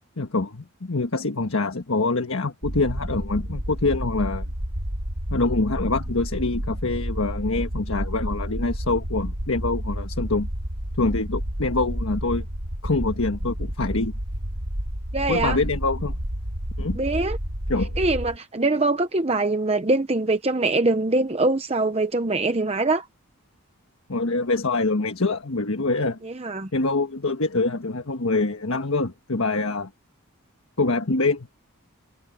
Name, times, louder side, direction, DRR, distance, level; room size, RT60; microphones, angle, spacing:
voice 1, 0.2-4.5 5.3-10.5 11.0-12.5 12.8-14.1 15.3-16.2 16.8-17.0 17.7-18.0 24.1-26.2 26.7-29.9 30.8-31.5, left 3 dB, 70° left, 1.4 m, -25 dB
sound 1, 2.6-18.4, equal, 80° right, 6.0 m, -30 dB
voice 2, 15.1-15.6 17.0-17.4 18.0-23.1 26.2-26.7, right 2 dB, 25° right, 0.8 m, -23 dB
head